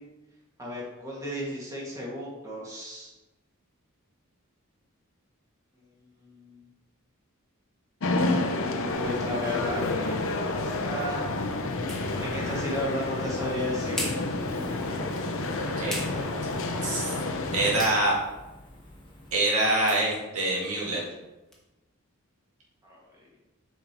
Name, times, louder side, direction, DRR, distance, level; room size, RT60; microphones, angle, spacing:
voice 1, 0.6-3.1 6.2-6.6 9.0-10.2 10.8-11.3 12.2-14.1 22.8-23.0, left 1 dB, 15° right, -5 dB, 1.9 m, -33 dB
sound 1, 8.0-17.9, left 2 dB, 65° left, 0.7 m, -30 dB
Laughter, 8.9-19.4, left 1 dB, 20° left, 1.4 m, -41 dB
sound 2, 13.4-21.6, left 1 dB, ahead, 1.2 m, -44 dB
voice 2, 16.8-17.1 17.5-18.2 19.3-21.0, right 2 dB, 80° right, -4 dB, 2.0 m, -25 dB
7.6 x 5.3 x 3.0 m, 1.1 s
head